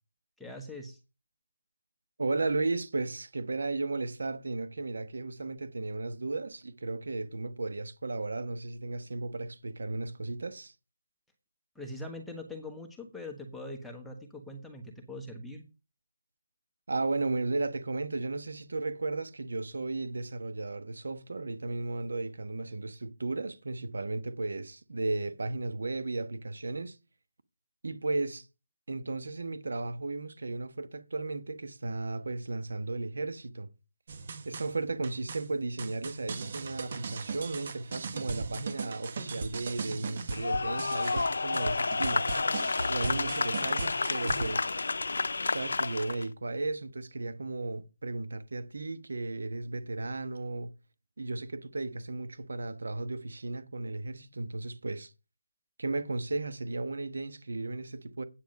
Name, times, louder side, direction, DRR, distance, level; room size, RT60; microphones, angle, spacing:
voice 1, 0.4-1.0 11.7-15.6, left 1 dB, ahead, 1.3 m, -42 dB
voice 2, 2.2-10.7 16.9-27.0 27.8-28.5 28.9-33.7 34.4-42.2 42.9-44.7 45.4-50.7 51.2-55.1 55.8-58.2, right 3 dB, 70° right, 1.2 m, -35 dB
sound 1, 34.1-44.5, right 4 dB, 45° right, 1.4 m, -38 dB
sound 2, 40.3-46.2, left 3 dB, 70° left, 0.5 m, -30 dB
8.9 x 7.2 x 5.3 m
figure-of-eight pair, 165°, 0 cm